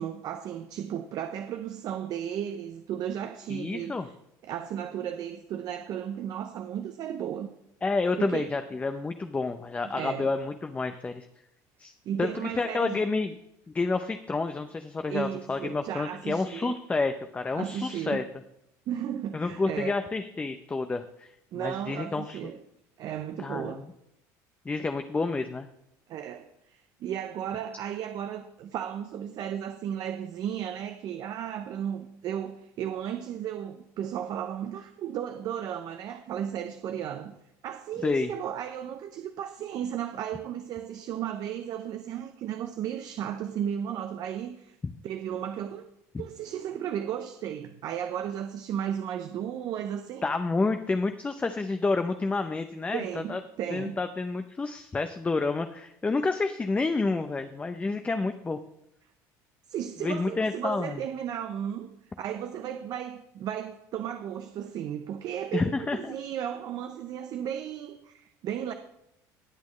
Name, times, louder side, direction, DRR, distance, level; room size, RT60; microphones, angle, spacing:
voice 1, 0.0-4.1 4.4-7.5 8.2-8.5 9.8-10.3 12.0-13.0 15.1-16.8 17.5-18.3 18.9-20.0 21.5-22.6 23.0-23.8 26.1-37.3 37.6-44.8 45.0-45.9 46.2-50.3 52.9-54.0 59.7-61.9 62.2-68.7, right 9 dB, 55° right, 8 dB, 0.7 m, -34 dB
voice 2, 3.5-4.1 7.8-11.3 11.8-11.9 12.2-12.3 12.6-13.3 13.7-18.2 19.3-22.5 23.4-23.9 24.7-25.7 38.0-38.3 44.8-44.9 50.2-53.4 53.7-58.6 60.0-61.0 65.5-66.1, left 3 dB, 15° left, 8 dB, 0.6 m, -29 dB
19.0 x 6.3 x 3.2 m, 0.83 s
supercardioid pair, 105°, 8 cm